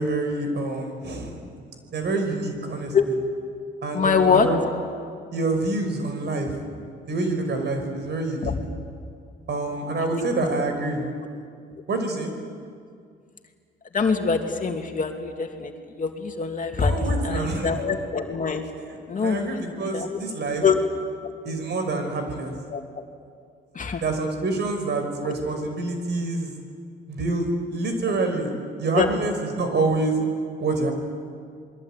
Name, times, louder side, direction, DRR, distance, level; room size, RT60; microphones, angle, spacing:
voice 1, 0.0-1.4 1.9-2.9 3.8-4.6 5.3-6.6 7.1-8.6 9.5-11.1 11.9-12.3 16.8-17.8 19.2-20.6 21.4-22.5 24.0-26.5 27.1-28.5 28.8-30.2 30.6-30.9, right 2 dB, 60° right, 5 dB, 5.6 m, -26 dB
voice 2, 3.9-4.5 8.4-8.6 10.2-10.3 13.9-15.7 16.0-18.7 19.1-20.2 20.6-20.8 22.7-22.8 23.7-24.0 25.2-25.3 28.9-29.1, left 5 dB, 40° left, 4 dB, 2.7 m, -24 dB
27.5 x 21.5 x 9.1 m, 2.2 s
cardioid pair, 90°, 20 cm